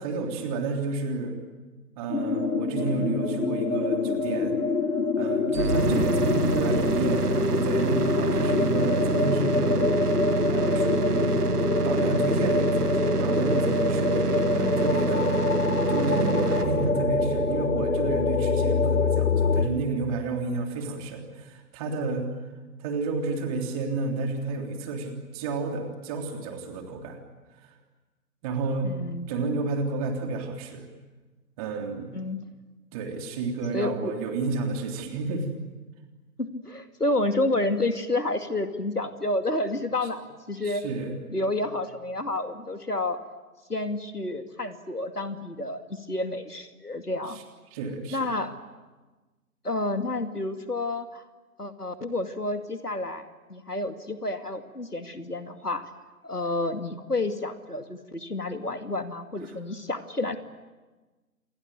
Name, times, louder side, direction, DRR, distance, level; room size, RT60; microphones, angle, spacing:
voice 1, 0.0-1.4 2.0-4.6 5.2-10.0 10.5-11.3 11.8-15.5 15.9-22.3 22.8-27.2 27.6-27.7 28.4-28.9 29.3-30.9 31.6-32.2 32.9-35.5 40.6-41.2 47.3-47.4 47.7-48.3, right 3 dB, 25° right, 4 dB, 3.4 m, -31 dB
sound 1, 2.1-19.7, left 4 dB, 65° left, 1.9 m, -25 dB
sound 2, 5.5-19.5, right 5 dB, 85° right, 1.0 m, -28 dB
voice 2, 5.8-6.1 14.5-14.8 28.8-29.3 32.1-32.4 33.7-34.1 36.4-40.8 41.3-43.2 43.7-47.4 48.1-48.5 49.6-51.2 51.6-55.9 56.2-60.4, left 2 dB, 90° left, 8 dB, 2.5 m, -30 dB
28.0 x 22.0 x 9.4 m, 1.2 s
figure-of-eight pair, 135°, 45 cm